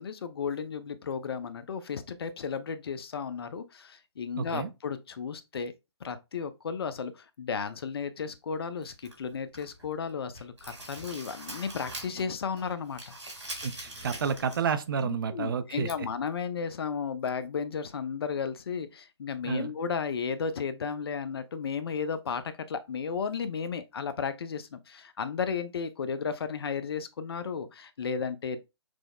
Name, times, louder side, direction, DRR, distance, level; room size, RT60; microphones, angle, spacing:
voice 1, 0.0-5.7 6.0-13.1 15.0-28.6, left 6 dB, 55° left, 0.5 m, -34 dB
voice 2, 4.4-4.7 13.6-15.9 19.4-19.7, right 6 dB, 50° right, 0.4 m, -30 dB
sound 1, 8.8-9.9 10.2-12.3 12.6-14.7 15.0-15.1 15.9-16.0, right 2 dB, 80° right, 1.8 m, -43 dB
6.1 x 2.0 x 2.3 m
figure-of-eight pair, 135°, 15 cm